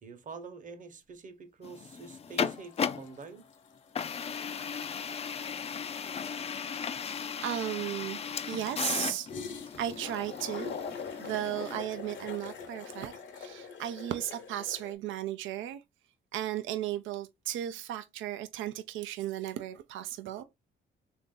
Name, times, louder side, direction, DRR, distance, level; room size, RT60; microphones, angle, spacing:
voice 1, 0.0-3.4, right 4 dB, 40° right, 0.9 m, -46 dB
sound 1, 1.6-3.2 4.0-11.8, left 6 dB, 30° left, 0.4 m, -36 dB
sound 2, 1.9-2.2 2.4-3.7 4.0-4.1 4.4-7.3 9.3-14.9, left 6 dB, 70° left, 0.9 m, -43 dB
voice 2, 7.4-9.3 9.8-10.9 11.2-15.8 16.3-20.4, right 12 dB, 80° right, 0.4 m, -35 dB
3.4 x 2.6 x 3.8 m
cardioid pair, 90°, 20 cm